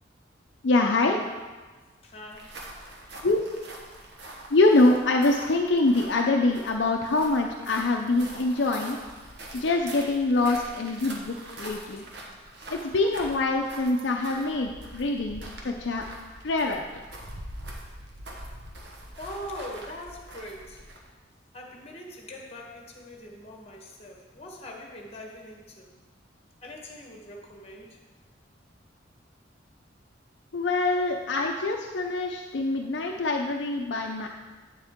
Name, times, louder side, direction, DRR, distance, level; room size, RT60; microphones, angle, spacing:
voice 1, 0.6-1.2 3.2-3.4 4.5-9.0 9.5-12.1 12.7-16.0 16.4-16.9 30.5-34.3, left 2 dB, 65° left, 1 dB, 0.5 m, -24 dB
voice 2, 2.0-2.6 12.0-12.1 18.3-18.5 19.2-20.9 21.5-25.9 26.6-28.0, left 1 dB, 30° left, 0 dB, 1.3 m, -42 dB
sound 1, 2.2-21.1, right 1 dB, 60° right, 1.2 m, -44 dB
8.9 x 7.2 x 3.6 m, 1.3 s
head